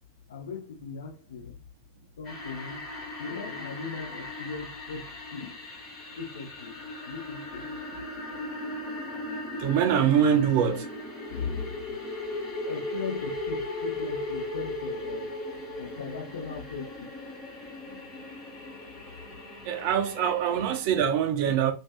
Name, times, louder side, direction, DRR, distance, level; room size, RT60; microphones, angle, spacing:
voice 1, 0.3-1.6 2.2-2.9 3.2-5.6 6.1-7.7 10.0-10.3 11.3-11.8 12.3-12.4 12.6-15.4 15.7-17.1 17.9-18.0 21.4-21.5, left 5 dB, 65° left, 0.6 m, -38 dB
sound 1, 2.2-20.8, left 2 dB, 25° left, 1.0 m, -37 dB
voice 2, 9.6-10.9 19.7-21.7, right 8 dB, 45° right, 0.5 m, -24 dB
2.4 x 2.3 x 2.2 m
figure-of-eight pair, 90°, 0 cm